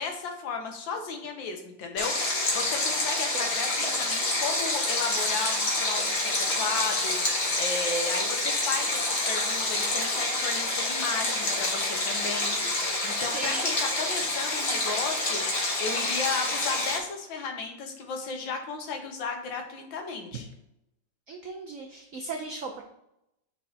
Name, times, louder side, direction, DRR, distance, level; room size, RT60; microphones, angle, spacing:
voice 1, 0.0-20.5, left 4 dB, 80° left, 3 dB, 1.6 m, -34 dB
Stream, 2.0-17.0, left 2 dB, 40° left, 1.3 m, -28 dB
voice 2, 13.3-13.7 21.3-22.8, right 3 dB, 70° right, 3 dB, 0.7 m, -37 dB
8.2 x 4.5 x 2.8 m, 0.85 s
omnidirectional pair, 2.0 m